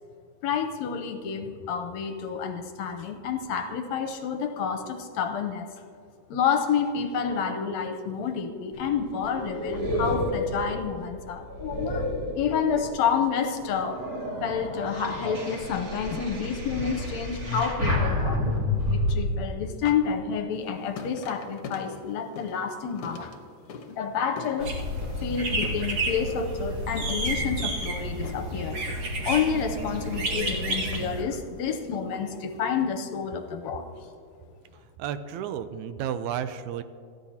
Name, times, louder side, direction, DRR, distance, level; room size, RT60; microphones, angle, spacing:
voice 1, 0.4-5.7 6.3-12.1 12.4-14.0 14.4-18.4 18.9-23.3 23.9-24.8 25.2-28.8 29.2-33.9, left 6 dB, 75° left, 6 dB, 1.9 m, -29 dB
sound 1, 8.7-13.0 13.5-19.1, left 1 dB, 30° right, 2.4 m, -30 dB
sound 2, 20.5-32.8, left 5 dB, 60° left, 1.7 m, -44 dB
sound 3, 24.6-31.2, right 1 dB, 55° right, 2.7 m, -30 dB
voice 2, 35.0-36.8, right 9 dB, 80° right, 11 dB, 2.0 m, -32 dB
27.5 x 10.5 x 2.9 m, 2.5 s
omnidirectional pair, 3.4 m